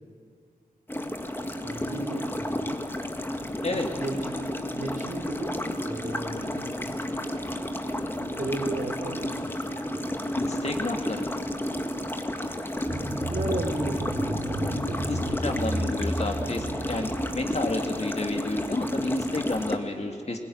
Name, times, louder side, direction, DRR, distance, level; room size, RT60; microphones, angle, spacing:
sound 1, 0.9-19.8, left 1 dB, 15° left, 1.8 m, -32 dB
voice 1, 1.6-2.8 3.7-4.3 4.7-7.5 8.0-10.1 13.2-15.1 15.5-15.7, right 2 dB, 55° right, 0 dB, 4.5 m, -36 dB
voice 2, 10.3-11.3 15.1-20.4, left 2 dB, 45° left, 2 dB, 2.7 m, -31 dB
sound 2, 12.8-17.9, right 1 dB, 25° right, 2.1 m, -33 dB
21.0 x 17.0 x 9.7 m, 2.3 s
cardioid pair, 50°, 16 cm